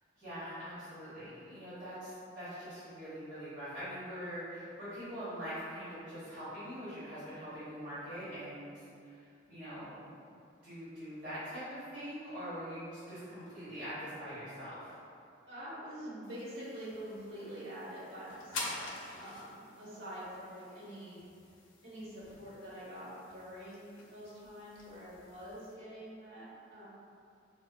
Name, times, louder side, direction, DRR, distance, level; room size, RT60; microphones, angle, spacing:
voice 1, 0.2-10.0 10.6-14.9, equal, 40° right, -15 dB, 1.4 m, -43 dB
voice 2, 15.5-21.2 21.8-26.8, equal, 65° right, -11 dB, 1.1 m, -46 dB
sound 1, 16.2-25.7, left 2 dB, 80° left, 0.5 m, -48 dB
4.4 x 2.2 x 2.2 m, 2.5 s
head